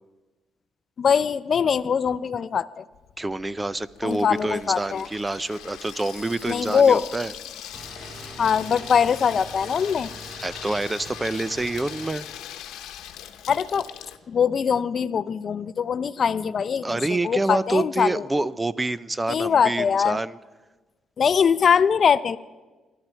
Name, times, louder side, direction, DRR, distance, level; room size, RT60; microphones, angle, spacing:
voice 1, 1.0-2.8 4.0-5.1 6.5-7.0 8.4-10.1 13.5-13.9 14.3-18.2 19.3-20.2 21.2-22.4, left 7 dB, 50° left, 16 dB, 0.5 m, -22 dB
Water tap faucet / Sink (filling or washing), 2.9-14.2, left 11 dB, 90° left, 1.0 m, -41 dB
voice 2, 3.2-7.3 10.4-12.3 16.8-20.4, right 2 dB, 15° right, 17 dB, 0.5 m, -27 dB
sound 1, 6.0-7.7, left 2 dB, 65° right, 6.9 m, -48 dB
sound 2, 7.7-12.1, right 2 dB, 40° right, 2.8 m, -42 dB
26.0 x 12.0 x 4.5 m, 1.2 s
cardioid pair, 90°, 0 cm